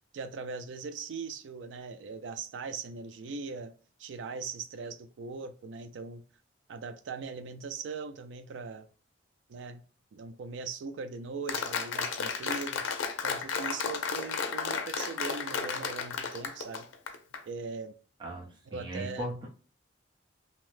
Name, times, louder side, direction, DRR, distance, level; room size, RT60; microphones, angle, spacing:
voice 1, 0.1-3.7 4.0-6.2 6.7-8.9 9.5-9.8 10.1-12.9 13.2-16.9 17.4-17.9 18.7-19.5, right 4 dB, 75° right, 0.3 m, -40 dB
Applause, 11.5-17.4, left 5 dB, 85° left, 0.4 m, -33 dB
voice 2, 18.2-19.5, equal, 25° right, 0.6 m, -38 dB
2.7 x 2.0 x 3.1 m
head